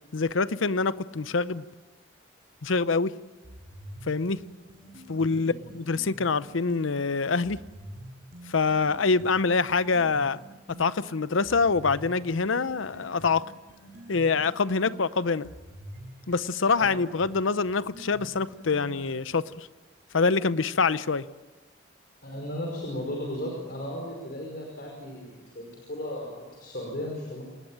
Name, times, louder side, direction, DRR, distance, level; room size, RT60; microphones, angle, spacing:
voice 1, 0.1-1.6 2.6-3.1 4.1-4.4 5.1-7.6 8.5-10.4 10.8-13.4 14.1-15.5 16.3-19.7 20.1-21.2, left 4 dB, 85° left, 16 dB, 0.7 m, -25 dB
sound 1, 3.4-7.0 7.4-11.0 11.4-19.2, right 1 dB, 45° right, 6.3 m, -46 dB
voice 2, 22.2-27.4, left 1 dB, 50° left, 0 dB, 5.3 m, -35 dB
27.5 x 19.0 x 8.9 m, 1.3 s
head